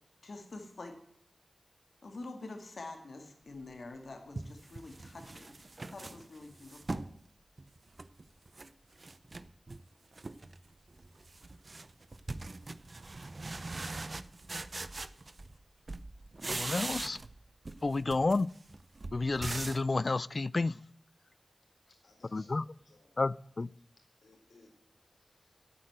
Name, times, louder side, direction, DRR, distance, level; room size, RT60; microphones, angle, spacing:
voice 1, 0.2-0.9 2.0-7.1, left 2 dB, 65° left, 2.0 m, -47 dB
sound 1, 3.7-3.8 4.4-7.2 7.6-8.7 9.0-9.8 10.2-10.6 10.9-15.6 15.9-17.4 17.7-19.9, right 2 dB, 45° right, 0.5 m, -41 dB
voice 2, 16.5-17.2 17.8-18.5 19.1-20.8 22.3-22.6 23.2-23.7, left 3 dB, 45° left, 0.3 m, -31 dB
voice 3, 21.7-23.2 23.9-25.7, left 2 dB, 90° left, 4.2 m, -64 dB
8.8 x 8.6 x 7.9 m
wide cardioid pair, 95°, 0 cm